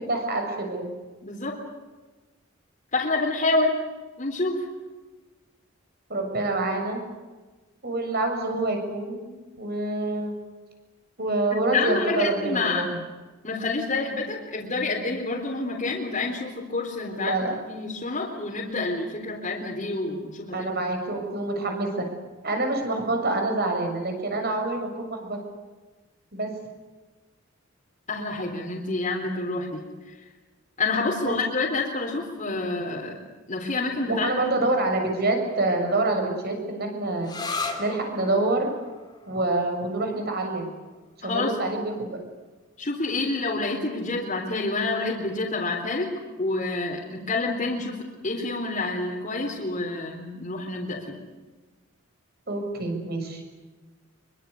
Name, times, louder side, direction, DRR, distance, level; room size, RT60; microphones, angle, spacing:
voice 1, 0.1-0.9 6.1-7.0 7.8-9.3 9.6-10.3 11.2-13.0 17.1-17.6 20.5-22.1 22.4-25.4 26.3-26.5 31.2-31.4 34.1-37.3 37.8-38.7 39.3-40.7 41.2-42.2 52.5-53.4, right 2 dB, 50° right, 4 dB, 6.9 m, -26 dB
voice 2, 1.2-1.6 2.9-3.8 4.2-4.7 11.5-12.9 13.4-20.7 28.1-29.8 30.8-33.2 33.5-34.4 41.2-41.6 42.8-46.1 46.4-51.2, left 3 dB, 40° left, -3 dB, 3.8 m, -28 dB
sound 1, 37.2-44.6, left 3 dB, 20° left, 3.3 m, -39 dB
25.0 x 23.5 x 8.4 m, 1.2 s
head